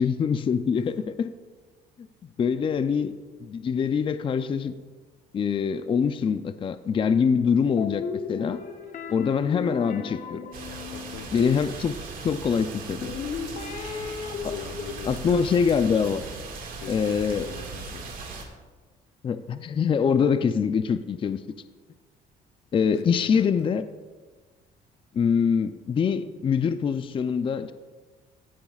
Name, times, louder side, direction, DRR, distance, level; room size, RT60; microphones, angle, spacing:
voice 1, 0.0-1.3 2.4-3.1 3.4-4.8 5.3-8.0 8.3-8.6 9.1-10.4 11.3-11.9 12.2-13.1 14.4-14.5 15.1-16.2 16.9-17.5 19.2-21.4 22.7-23.8 25.1-27.7, left 6 dB, 30° left, 11 dB, 0.5 m, -24 dB
sound 1, 7.8-12.0 13.0-14.9, left 6 dB, 45° left, 0.9 m, -35 dB
sound 2, 10.5-18.4, right 4 dB, 55° right, 1.9 m, -38 dB
voice 2, 10.9-11.7 14.5-15.4 16.8-18.1 22.9-23.7, left 9 dB, 75° left, 10 dB, 0.7 m, -43 dB
16.0 x 9.3 x 2.4 m, 1.3 s
cardioid pair, 110°, 17 cm